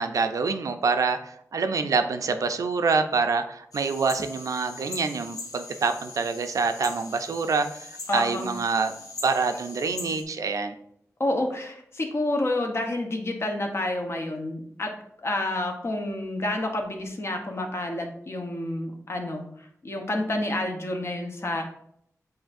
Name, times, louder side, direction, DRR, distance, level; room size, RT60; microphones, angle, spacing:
voice 1, 0.0-8.9 9.2-10.7, right 4 dB, 75° right, 7 dB, 0.4 m, -26 dB
sound 1, 3.7-10.2, left 3 dB, 90° left, 0.8 m, -41 dB
voice 2, 8.1-8.5 11.2-14.9 15.2-21.6, left 1 dB, 50° left, 2 dB, 0.9 m, -29 dB
7.6 x 2.7 x 2.6 m, 0.70 s
wide cardioid pair, 85°, 6 cm